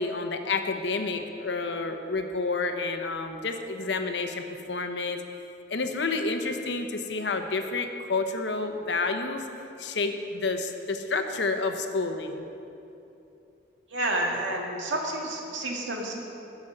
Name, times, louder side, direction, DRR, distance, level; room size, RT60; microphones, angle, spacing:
voice 1, 0.0-5.2 5.7-9.4 9.8-12.4, left 3 dB, 70° left, 6 dB, 0.9 m, -29 dB
voice 2, 13.9-16.2, right 1 dB, 90° right, -1 dB, 2.0 m, -30 dB
15.5 x 6.1 x 6.5 m, 2.9 s
head